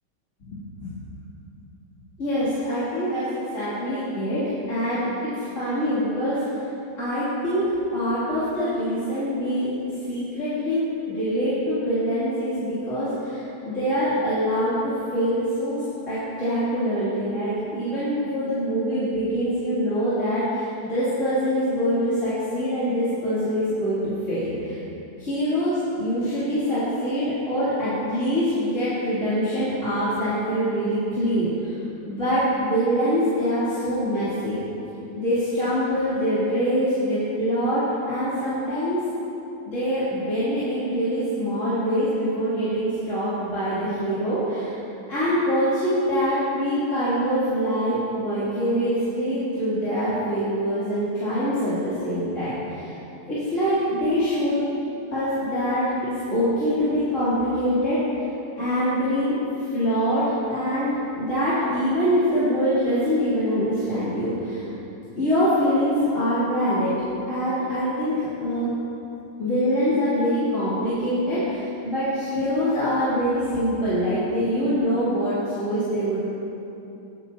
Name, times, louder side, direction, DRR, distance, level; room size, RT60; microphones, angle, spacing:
voice 1, 0.5-1.1 2.2-5.1 5.4-6.4 7.0-9.7 10.1-10.8 11.1-15.8 16.1-24.8 25.2-31.7 32.1-34.6 35.1-39.0 39.7-44.8 45.1-52.9 53.3-54.6 55.1-58.0 58.6-59.3 59.7-64.7 65.2-67.0 67.3-68.7 69.4-76.2, equal, 45° left, -14 dB, 3.5 m, -24 dB
19.5 x 9.1 x 2.9 m, 2.9 s
omnidirectional pair, 1.9 m